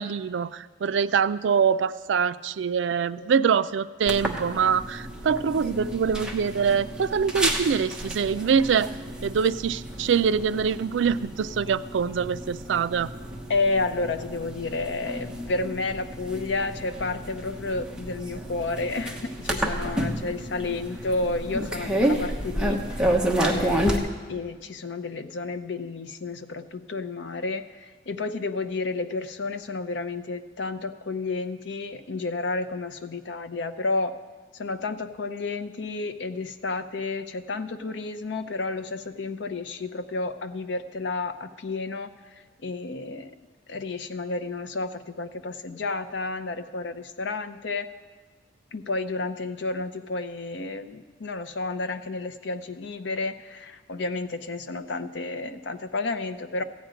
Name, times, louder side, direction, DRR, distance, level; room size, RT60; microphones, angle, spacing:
voice 1, 0.0-8.9 9.2-13.1, right 6 dB, 80° right, 15 dB, 0.4 m, -24 dB
ambient sound computer room, 4.1-24.0, right 1 dB, 5° right, 1.0 m, -30 dB
voice 2, 13.5-23.1 23.4-34.1 34.5-43.3 43.7-47.9 48.7-56.6, left 3 dB, 70° left, 11 dB, 0.6 m, -31 dB
15.0 x 5.1 x 9.0 m, 1.4 s
head